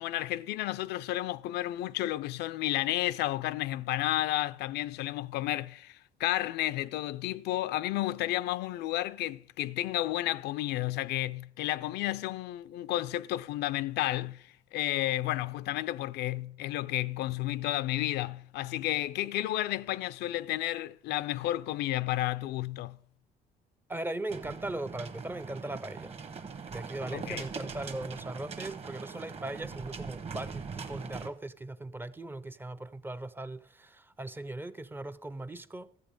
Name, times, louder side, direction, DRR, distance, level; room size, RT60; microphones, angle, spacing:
voice 1, 0.0-23.0 27.1-27.5, left 15 dB, 80° left, 0.4 m, -32 dB
voice 2, 23.9-26.2 26.7-35.9, right 2 dB, 10° right, 0.4 m, -39 dB
sound 1, 24.3-31.3, right 5 dB, 35° right, 1.0 m, -41 dB
13.5 x 8.0 x 5.1 m
cardioid pair, 110°, 17 cm